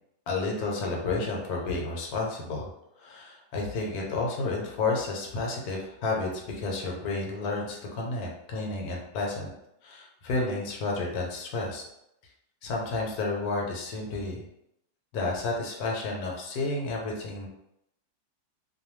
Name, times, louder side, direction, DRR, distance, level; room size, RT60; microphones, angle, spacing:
voice 1, 0.3-2.7 3.0-9.5 9.8-11.8 12.6-14.5 15.1-17.5, left 3 dB, 70° left, -1 dB, 1.1 m, -31 dB
2.7 x 2.2 x 3.0 m, 0.82 s
omnidirectional pair, 1.8 m